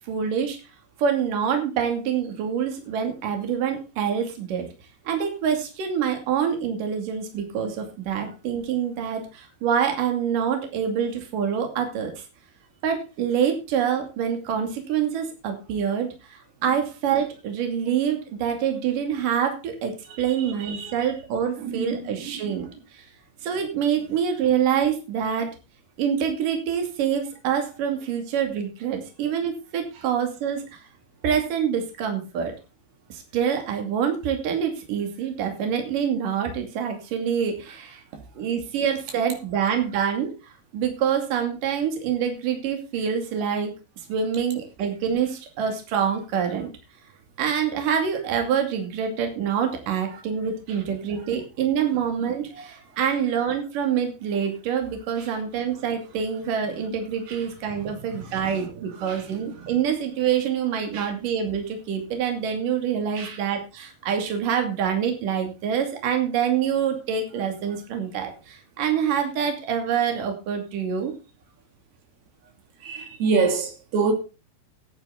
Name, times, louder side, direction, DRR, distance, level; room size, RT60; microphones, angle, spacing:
voice 1, 0.1-0.6 1.0-4.7 5.0-12.2 12.8-19.9 20.2-23.0 23.4-25.5 26.0-30.8 31.2-32.5 33.1-38.0 38.4-43.7 44.1-46.7 47.4-71.1, right 8 dB, 60° right, 4.1 m, -26 dB
voice 2, 20.0-21.1 21.6-22.7 24.0-24.1 38.1-38.2 50.0-50.2 50.7-50.8 51.2-51.3 52.5-52.7 52.9-53.2 55.2-55.4 57.3-59.8 60.9-61.1 63.2-63.4 72.8-74.1, right 4 dB, 85° right, 4.6 m, -30 dB
14.5 x 10.0 x 4.0 m
omnidirectional pair, 4.4 m